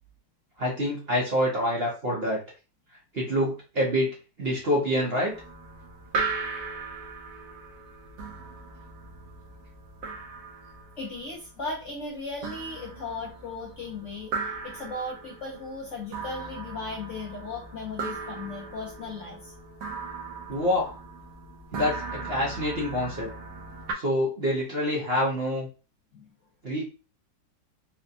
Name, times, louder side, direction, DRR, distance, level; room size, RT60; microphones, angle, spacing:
voice 1, 0.6-2.4 2.9-5.3 20.5-20.9 21.7-23.3 23.9-25.7 26.6-26.8, equal, 50° right, -3 dB, 0.7 m, -27 dB
sound 1, 5.3-23.9, right 4 dB, 75° right, 1.2 m, -38 dB
voice 2, 11.0-19.5 26.1-26.3, left 3 dB, 60° left, -2 dB, 0.8 m, -37 dB
4.1 x 2.1 x 2.6 m, 0.34 s
omnidirectional pair, 1.9 m